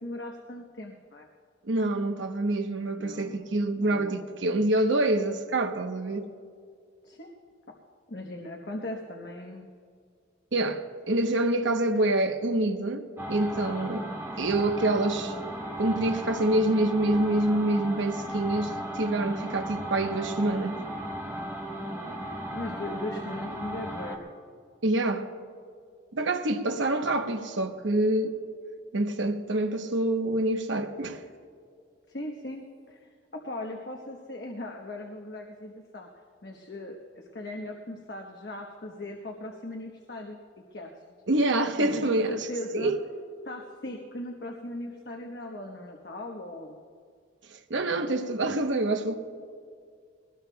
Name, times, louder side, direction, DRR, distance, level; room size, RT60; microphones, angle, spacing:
voice 1, 0.0-1.3 3.0-3.4 3.7-4.2 7.0-7.3 8.1-9.7 22.5-24.2 32.1-36.1 36.4-40.4 40.7-40.9 41.8-42.9 43.4-46.8, left 1 dB, 60° left, 1.1 m, -39 dB
voice 2, 1.6-6.3 10.5-14.1 14.4-15.4 15.8-20.8 24.8-25.3 26.1-28.4 28.9-31.2 41.3-42.5 42.7-43.0 47.7-49.2, right 2 dB, 85° right, 1.0 m, -26 dB
sound 1, 13.2-24.2, right 1 dB, 15° right, 1.3 m, -36 dB
22.0 x 19.0 x 2.3 m
head